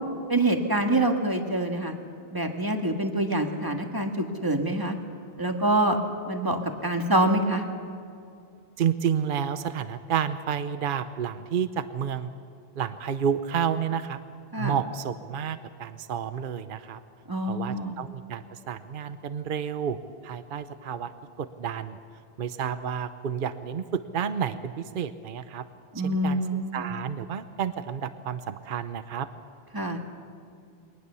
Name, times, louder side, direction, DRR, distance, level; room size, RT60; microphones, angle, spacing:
voice 1, 0.3-1.9 2.3-4.9 5.4-6.0 6.3-7.6 14.5-14.7 17.3-18.0 26.0-26.9 29.7-30.0, right 1 dB, 20° right, 3 dB, 1.8 m, -26 dB
voice 2, 8.8-12.3 12.8-14.2 14.6-17.0 17.4-20.0 20.2-22.0 22.4-25.6 26.0-26.4 26.7-29.3, right 8 dB, 60° right, 11 dB, 0.9 m, -30 dB
23.0 x 19.0 x 6.9 m, 2.5 s
omnidirectional pair, 1.0 m